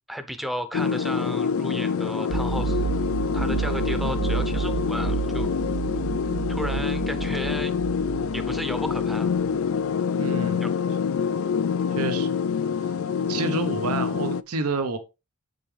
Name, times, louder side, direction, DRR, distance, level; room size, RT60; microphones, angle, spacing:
voice 1, 0.1-2.9 3.3-5.5 6.5-7.7 8.3-9.3 10.6-10.7, equal, ahead, 0.7 m, -33 dB
sound 1, 0.7-14.4, left 6 dB, 70° left, 0.3 m, -26 dB
sound 2, 2.3-9.7, right 8 dB, 60° right, 0.3 m, -30 dB
voice 2, 10.2-10.6 11.9-12.3 12.8-12.9 13.3-15.0, right 3 dB, 90° right, 0.9 m, -29 dB
8.0 x 5.3 x 3.3 m
head